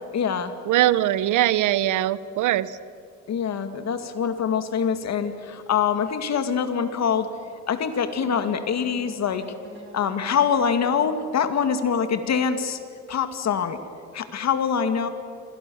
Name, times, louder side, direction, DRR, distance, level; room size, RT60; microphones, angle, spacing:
voice 1, 0.1-0.5 3.3-7.3 7.7-9.5 9.9-12.8 13.1-13.8 14.1-15.1, left 7 dB, 60° left, 9 dB, 2.3 m, -24 dB
voice 2, 0.7-2.8, right 13 dB, 80° right, 17 dB, 1.0 m, -21 dB
sound 1, 8.0-13.1, right 1 dB, 40° right, 5.9 m, -49 dB
27.5 x 26.0 x 7.2 m, 2.4 s
cardioid pair, 90°, 30 cm